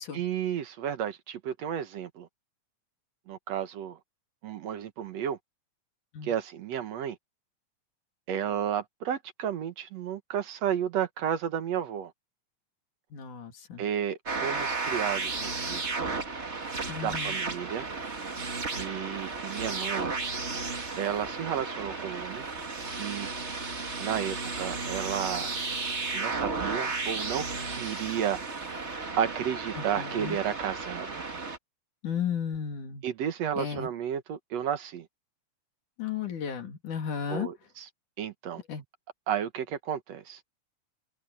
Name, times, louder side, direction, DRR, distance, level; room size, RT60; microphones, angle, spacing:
voice 1, 0.1-2.3 3.3-4.0 4.4-5.4 6.2-7.2 8.3-12.1 13.8-16.0 17.0-17.9 18.8-20.1 21.0-22.5 22.9-23.3 24.0-25.5 26.1-28.4 29.1-31.2 33.0-35.1 37.3-37.9 38.2-38.6 39.3-40.4, right 9 dB, 65° right, 2.1 m, -32 dB
voice 2, 13.1-13.8 16.9-17.4 29.8-30.4 32.0-33.0 33.6-33.9 36.0-37.5 38.7-38.8, left 7 dB, 75° left, 4.1 m, -34 dB
sound 1, 14.3-31.6, right 3 dB, 25° right, 1.6 m, -34 dB
omnidirectional pair, 3.6 m